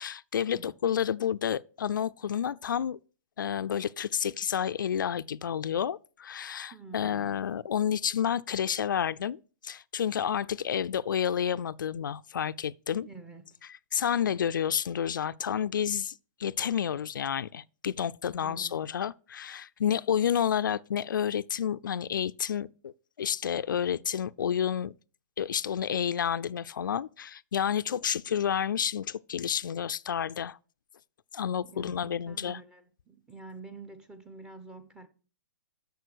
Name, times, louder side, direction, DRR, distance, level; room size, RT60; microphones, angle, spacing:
voice 1, 0.0-3.0 3.4-13.1 13.9-24.9 25.4-30.6 31.3-32.6, left 8 dB, 85° left, 0.4 m, -30 dB
voice 2, 6.7-7.3 13.0-13.6 18.4-18.9 31.6-35.1, right 4 dB, 10° right, 0.9 m, -48 dB
6.7 x 6.6 x 6.2 m
hypercardioid pair, 145°, 10 cm